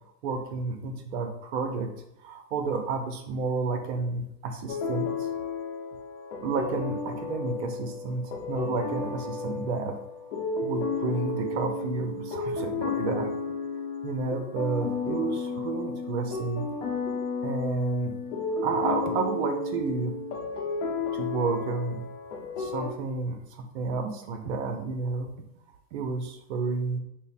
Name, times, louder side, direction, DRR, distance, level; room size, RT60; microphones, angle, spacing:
voice 1, 0.2-1.9 2.2-5.3 6.4-10.0 10.3-13.3 14.0-16.7 17.4-18.1 18.6-20.1 21.1-22.0 22.6-25.3 25.9-27.0, right 4 dB, 45° right, 6 dB, 0.6 m, -31 dB
sound 1, 4.7-22.9, left 4 dB, 50° left, 0.7 m, -33 dB
3.2 x 2.0 x 4.1 m, 0.85 s
supercardioid pair, 145°, 47 cm